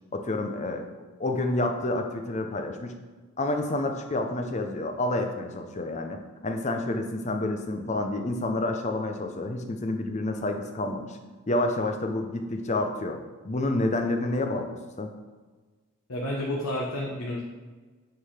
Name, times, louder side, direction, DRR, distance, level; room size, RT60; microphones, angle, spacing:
voice 1, 0.1-0.9 1.2-2.9 3.4-11.2 11.5-13.2 13.4-15.1, left 2 dB, 30° left, 5 dB, 0.6 m, -29 dB
voice 2, 16.1-17.4, left 1 dB, 85° left, -4 dB, 1.2 m, -30 dB
8.2 x 3.8 x 5.0 m, 1.4 s
head